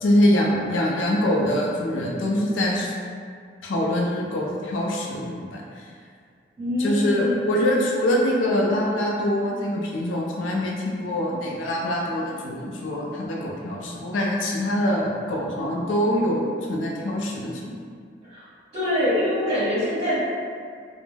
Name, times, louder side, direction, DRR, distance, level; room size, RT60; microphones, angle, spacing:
voice 1, 0.0-2.9 3.6-5.9 6.8-17.7, left 1 dB, 85° left, -2 dB, 0.4 m, -24 dB
voice 2, 6.6-7.5 18.3-18.4 18.7-20.2, left 1 dB, 35° right, -11 dB, 1.0 m, -24 dB
2.2 x 2.0 x 3.3 m, 2.1 s
head